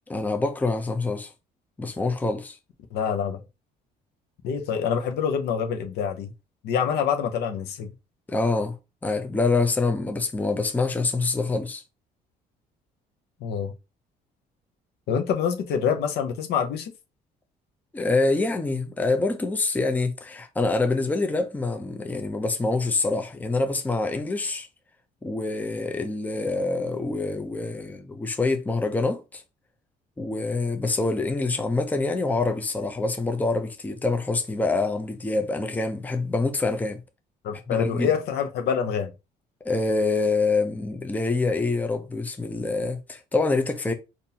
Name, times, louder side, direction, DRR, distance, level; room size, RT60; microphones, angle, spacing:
voice 1, 0.1-1.3 1.8-2.6 8.3-8.8 9.0-11.8 17.9-24.7 25.2-29.4 30.2-37.0 37.7-38.1 39.6-43.9, left 3 dB, 10° left, 0.5 m, -26 dB
voice 2, 2.9-3.4 4.4-6.3 6.6-7.9 13.4-13.7 15.1-16.9 37.4-39.1, left 7 dB, 75° left, 0.8 m, -26 dB
3.8 x 2.6 x 2.8 m
cardioid pair, 110°, 17 cm